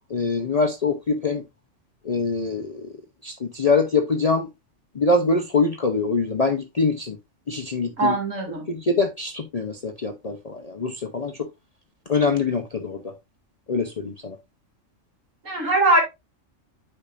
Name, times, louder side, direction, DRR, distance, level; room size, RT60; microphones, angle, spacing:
voice 1, 0.1-1.4 2.0-2.9 3.2-4.5 4.9-7.2 7.5-8.2 8.7-11.5 12.1-13.1 13.7-14.4, left 3 dB, 40° left, 0.6 m, -24 dB
voice 2, 8.0-8.7 15.4-16.0, right 2 dB, 80° right, 3.0 m, -21 dB
8.6 x 5.6 x 2.4 m
omnidirectional pair, 1.3 m